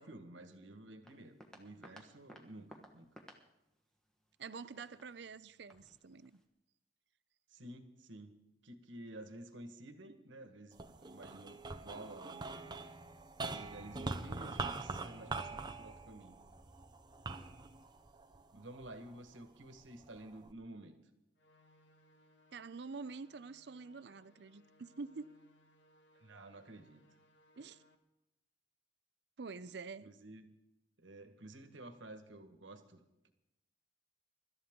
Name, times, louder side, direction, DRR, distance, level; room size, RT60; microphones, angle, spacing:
voice 1, 0.0-3.2 7.5-8.3 8.6-12.6 13.4-16.4 18.5-20.9 26.1-27.0 30.0-30.5 31.0-33.3, right 1 dB, 75° right, 1.6 m, -52 dB
sound 1, 1.0-6.4, equal, 5° left, 1.2 m, -60 dB
voice 2, 4.4-6.4 22.5-25.3 27.6-27.8 29.4-30.1, right 4 dB, 60° right, 0.5 m, -47 dB
sound 2, 10.7-19.2 19.8-20.5, right 3 dB, 20° right, 0.6 m, -43 dB
sound 3, 21.4-28.0, left 1 dB, 65° left, 1.5 m, -68 dB
24.5 x 13.0 x 3.8 m
head